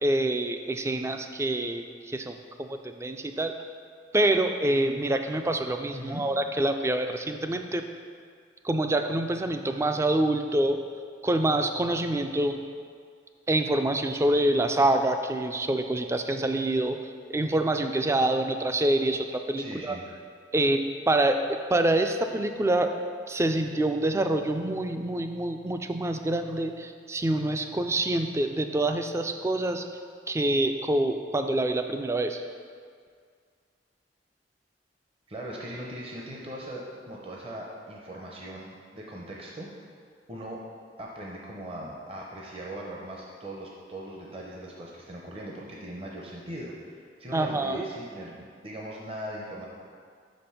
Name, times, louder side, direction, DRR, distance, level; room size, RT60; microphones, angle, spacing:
voice 1, 0.0-3.5 4.1-7.8 8.6-10.8 11.2-12.6 13.5-17.0 17.3-20.0 20.5-21.4 21.7-22.9 23.3-29.9 30.3-32.4 47.3-47.9, right 1 dB, 15° right, 6 dB, 0.3 m, -26 dB
voice 2, 5.9-6.3 19.6-20.1 35.3-39.7 40.3-40.6 41.0-49.7, right 1 dB, 30° right, -3 dB, 0.7 m, -39 dB
6.0 x 5.2 x 5.7 m, 2.1 s
head